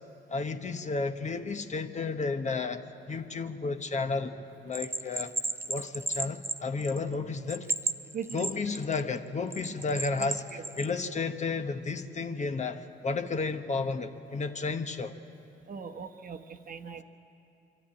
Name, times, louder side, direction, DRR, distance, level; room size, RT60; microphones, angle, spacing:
voice 1, 0.3-4.4 4.6-5.3 5.7-7.7 8.3-15.1, left 4 dB, 35° left, 8 dB, 1.0 m, -32 dB
Bell, 4.7-7.1 7.5-9.0 9.5-10.9, right 2 dB, 10° right, 0.6 m, -33 dB
voice 2, 8.1-8.5 10.5-10.6 15.7-17.0, right 6 dB, 45° right, 5 dB, 1.1 m, -40 dB
24.0 x 13.0 x 8.7 m, 2.7 s
cardioid pair, 90°, 20 cm